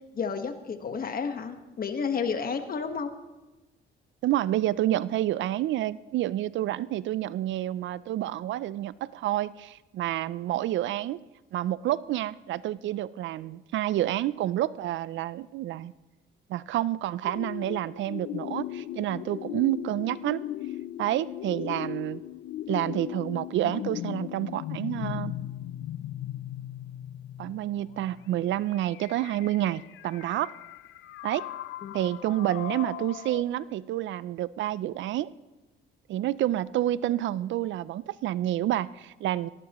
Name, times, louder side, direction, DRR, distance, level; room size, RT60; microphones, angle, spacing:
voice 1, 0.1-3.1 31.8-32.0, left 5 dB, 45° left, 8 dB, 1.4 m, -31 dB
voice 2, 4.2-11.2 11.5-15.9 16.5-20.4 21.0-22.2 22.7-25.4 27.4-30.5 31.2-31.5 31.9-35.3 36.1-39.5, right 13 dB, 70° right, 19 dB, 0.4 m, -29 dB
sound 1, 17.2-33.4, left 13 dB, 85° left, 0.5 m, -38 dB
18.0 x 16.5 x 3.0 m, 1.1 s
cardioid pair, 90°, 20 cm